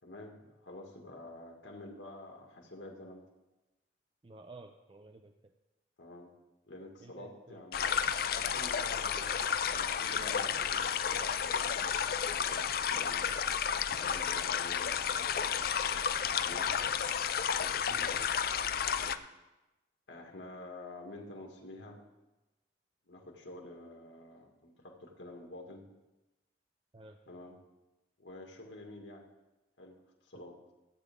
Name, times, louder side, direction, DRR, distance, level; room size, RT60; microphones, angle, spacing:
voice 1, 0.0-3.3 6.0-6.3 6.7-9.3 9.7-13.3 13.9-16.7 17.5-18.2 18.8-19.2 20.1-22.0 23.1-25.9 27.3-27.6 28.2-29.2 29.8-30.0 30.2-30.6, left 2 dB, 90° left, 1 dB, 2.0 m, -49 dB
voice 2, 4.2-5.5 7.0-7.6 8.8-9.0 17.9-18.3 26.9-27.2, right 2 dB, 30° right, 5 dB, 0.5 m, -52 dB
sound 1, 7.7-19.2, left 7 dB, 55° left, 0.4 m, -32 dB
15.0 x 8.8 x 3.6 m, 1.0 s
head